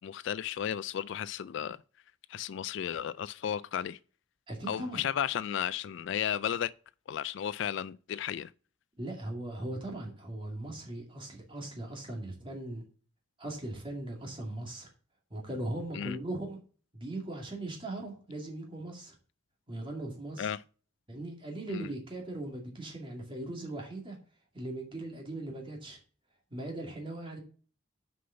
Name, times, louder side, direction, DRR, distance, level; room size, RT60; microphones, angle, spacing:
voice 1, 0.0-1.8 2.3-4.0 4.7-6.7 7.1-8.5 15.9-16.2 20.4-20.6 21.7-21.9, left 9 dB, 60° left, 0.3 m, -34 dB
voice 2, 4.5-5.0 9.0-12.8 13.4-14.9 15.3-16.6 16.9-19.1 19.7-20.5 21.1-24.2 24.5-26.0 26.5-27.4, right 1 dB, 25° right, 2.3 m, -39 dB
6.5 x 5.4 x 6.8 m
head